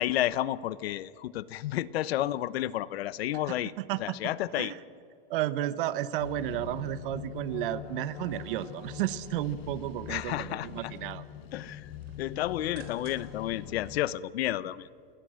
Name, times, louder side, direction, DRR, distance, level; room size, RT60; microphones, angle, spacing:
voice 1, 0.0-3.7 4.0-4.7 10.1-10.9 11.5-11.9 12.2-14.9, left 13 dB, 80° left, 18 dB, 0.9 m, -31 dB
voice 2, 5.3-11.2, right 13 dB, 60° right, 15 dB, 1.1 m, -32 dB
sound 1, 6.2-14.0, left 10 dB, 45° left, 1.5 m, -43 dB
sound 2, 8.3-10.4 10.8-11.3 11.6-13.4 13.8-13.9, right 9 dB, 35° right, 3.6 m, -58 dB
28.0 x 21.0 x 6.4 m, 2.5 s
supercardioid pair, 165°, 30 cm